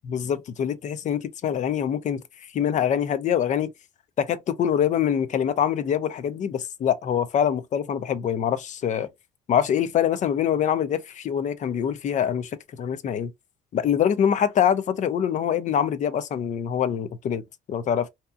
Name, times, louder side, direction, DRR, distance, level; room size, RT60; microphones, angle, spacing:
voice 1, 0.1-2.2 2.5-3.7 4.2-9.1 9.5-13.3 13.7-17.4 17.7-18.1, left 9 dB, 45° left, 0.5 m, -24 dB
2.8 x 2.3 x 2.3 m
cardioid pair, 110°, 17 cm